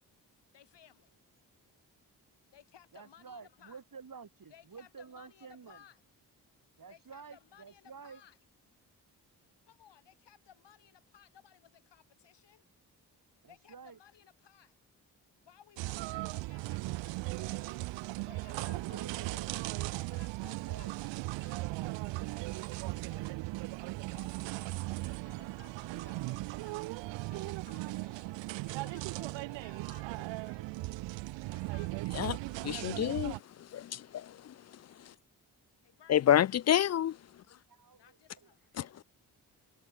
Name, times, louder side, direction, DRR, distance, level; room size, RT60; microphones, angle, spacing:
voice 1, 0.5-1.2 2.5-3.8 4.5-6.0 6.9-8.4 9.7-12.6 13.5-14.8 15.4-17.8 18.2-21.8 22.5-23.4 24.1-26.9 27.3-28.4 28.7-30.7 31.5-32.4 35.8-36.6 37.9-38.7, left 9 dB, 75° left, 6.7 m, -60 dB
voice 2, 2.9-5.8 6.8-8.2 13.4-14.0 18.6-19.7 20.6-20.9 25.2-25.5 25.9-26.2 28.5-28.7 37.7-38.9, right 5 dB, 50° right, 4.7 m, -51 dB
sound 1, 15.8-33.4, right 21 dB, 85° right, 0.7 m, -38 dB
voice 3, 32.7-33.4 33.7-34.5 36.1-37.2 38.8-38.9, left 10 dB, 40° left, 0.4 m, -28 dB
supercardioid pair, 40°, 43 cm